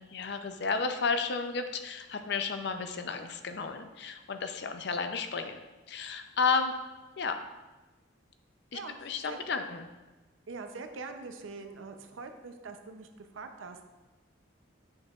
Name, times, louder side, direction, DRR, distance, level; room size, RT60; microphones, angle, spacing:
voice 1, 0.0-5.6 5.9-6.7 7.2-7.4 8.7-9.9, left 5 dB, 60° left, 7 dB, 0.5 m, -32 dB
voice 2, 8.7-9.4 10.5-13.8, right 4 dB, 85° right, 7 dB, 0.6 m, -43 dB
7.1 x 6.4 x 2.4 m, 1.2 s
head